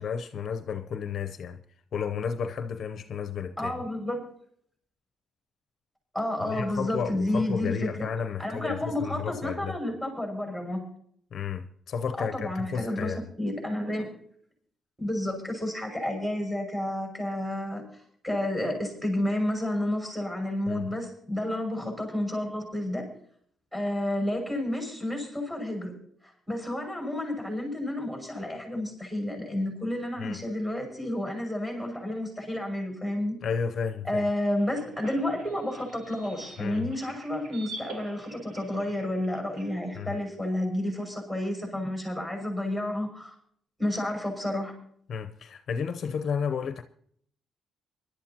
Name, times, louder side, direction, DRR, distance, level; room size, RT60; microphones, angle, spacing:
voice 1, 0.0-1.6 1.9-3.7 6.5-9.7 11.3-13.2 20.7-20.9 30.2-30.4 33.4-34.2 36.6-36.9 39.9-40.2 45.1-46.8, left 6 dB, 50° left, 0.7 m, -32 dB
voice 2, 3.6-4.2 6.1-8.1 8.4-10.8 12.2-14.1 15.0-23.1 23.7-25.9 26.5-33.4 34.0-43.3 43.8-44.7, left 1 dB, 10° right, 5.7 m, -30 dB
sound 1, 34.3-39.7, right 2 dB, 65° right, 2.3 m, -46 dB
24.5 x 12.0 x 2.9 m
cardioid pair, 135°, 0 cm